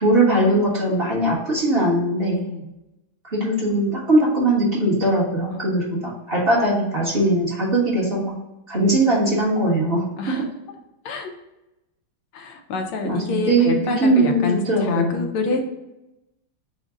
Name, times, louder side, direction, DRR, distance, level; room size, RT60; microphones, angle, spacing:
voice 1, 0.0-2.4 3.3-8.3 8.7-10.3 13.0-15.3, right 1 dB, 35° right, -6 dB, 1.0 m, -20 dB
voice 2, 2.3-2.6 5.5-6.2 10.2-10.4 11.1-11.3 12.3-14.6 14.8-15.6, left 3 dB, 80° left, 3 dB, 1.6 m, -27 dB
5.1 x 2.1 x 4.8 m, 0.94 s
omnidirectional pair, 2.4 m